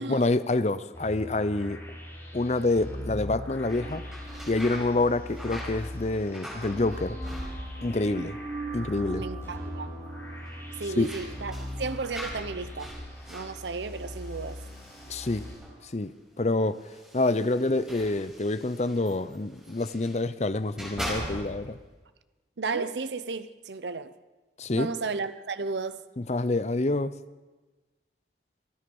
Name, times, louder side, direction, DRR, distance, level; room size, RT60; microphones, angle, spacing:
voice 1, 0.0-1.8 2.3-4.0 4.5-7.2 7.8-8.4 8.7-9.2 11.0-11.1 15.1-15.4 15.9-16.8 17.1-21.8 24.6-24.9 26.2-27.1, left 2 dB, 40° left, 0.6 m, -27 dB
sound 1, 0.9-15.5, left 1 dB, 15° left, 6.9 m, -40 dB
sound 2, 3.6-8.0 8.3-8.9 9.2-9.3 10.4-15.8 16.7-20.2 20.6-21.8, equal, 5° right, 5.5 m, -42 dB
sound 3, 3.6-15.8, right 3 dB, 25° right, 2.8 m, -45 dB
voice 2, 9.1-9.9 10.8-12.9 13.3-14.6 22.6-24.1 24.7-26.0, right 4 dB, 80° right, 0.7 m, -33 dB
27.0 x 9.9 x 5.4 m
head